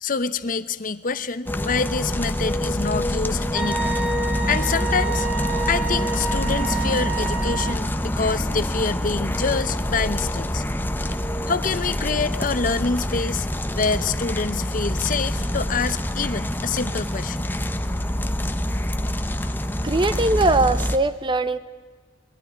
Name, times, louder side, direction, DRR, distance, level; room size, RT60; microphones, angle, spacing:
voice 1, 0.0-3.9 4.5-5.3 5.7-10.6 11.5-13.5 13.8-17.5, left 4 dB, 45° left, 13 dB, 0.7 m, -26 dB
sound 1, 1.5-21.0, left 1 dB, 10° left, 0.7 m, -26 dB
Wind instrument woodwind instrument, 3.5-7.8, right 6 dB, 5° right, 1.2 m, -30 dB
voice 2, 19.8-21.6, right 2 dB, 25° right, 13 dB, 0.7 m, -21 dB
21.5 x 14.0 x 10.0 m, 1.4 s
head